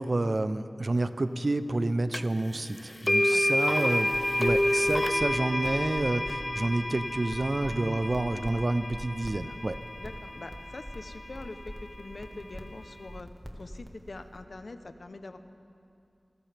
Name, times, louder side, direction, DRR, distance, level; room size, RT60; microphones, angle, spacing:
voice 1, 0.0-4.1 4.4-9.8, right 2 dB, 55° right, 11 dB, 0.6 m, -29 dB
sound 1, 2.1-2.2 3.1-11.1, left 1 dB, 25° left, 0.4 m, -29 dB
sound 2, 4.1-14.4, equal, ahead, 1.5 m, -45 dB
voice 2, 10.0-13.3 13.6-15.4, left 2 dB, 65° left, 9 dB, 0.7 m, -44 dB
28.0 x 13.5 x 3.4 m, 2.5 s
wide cardioid pair, 60°, 0 cm